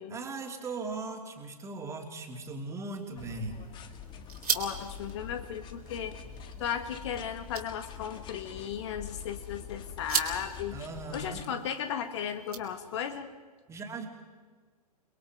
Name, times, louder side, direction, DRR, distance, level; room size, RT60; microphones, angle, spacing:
voice 1, 0.1-3.6 10.7-11.4 13.7-14.1, right 3 dB, 15° right, 3 dB, 3.1 m, -38 dB
sound 1, 2.8-13.2, right 5 dB, 75° right, 3.6 m, -40 dB
sound 2, 3.2-11.4, left 7 dB, 25° left, 1.6 m, -45 dB
voice 2, 4.5-6.2 6.6-10.8 11.1-13.3, left 8 dB, 45° left, 8 dB, 1.8 m, -35 dB
30.0 x 21.5 x 4.9 m, 1.5 s
figure-of-eight pair, 115°, 20 cm